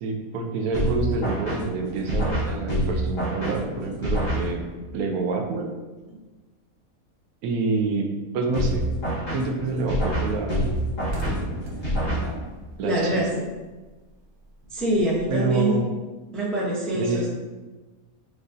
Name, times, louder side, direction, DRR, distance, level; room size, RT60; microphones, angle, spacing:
voice 1, 0.0-4.7 4.9-5.7 7.4-8.9 9.3-10.7 12.1-12.5 12.8-13.3 15.3-15.9 16.9-17.3, right 3 dB, 90° right, 3 dB, 1.1 m, -27 dB
sound 1, 0.7-4.9 8.5-12.7, equal, 60° left, 1.8 m, -27 dB
sound 2, 8.9-9.3 9.7-9.8 10.1-10.2 10.5-13.5 13.8-15.5, right 1 dB, 60° right, 1.0 m, -35 dB
voice 2, 12.8-13.3 14.7-15.8 16.3-17.3, right 1 dB, ahead, -5 dB, 0.5 m, -24 dB
6.2 x 2.5 x 2.6 m, 1.2 s
omnidirectional pair, 1.5 m